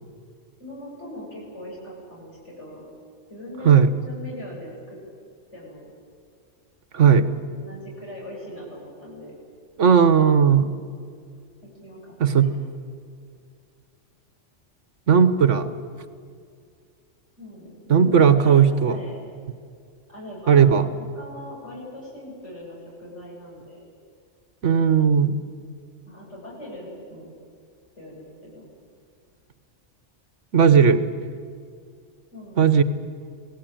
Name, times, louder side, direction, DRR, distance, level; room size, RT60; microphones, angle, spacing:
voice 1, 0.6-2.8 3.3-3.7 4.0-5.0 5.5-5.9 7.2-9.3 11.6-12.5 17.4-19.2 20.1-20.7 21.0-23.8 26.1-27.3 28.0-28.7 32.3-32.9, left 1 dB, 70° left, -4 dB, 8.3 m, -40 dB
voice 2, 6.9-7.3 9.8-10.7 12.2-12.5 15.1-15.7 17.9-19.0 20.5-20.9 24.6-25.4 30.5-31.0 32.6-32.8, right 7 dB, 80° right, 11 dB, 1.6 m, -16 dB
27.0 x 18.5 x 9.1 m, 2.2 s
omnidirectional pair, 1.2 m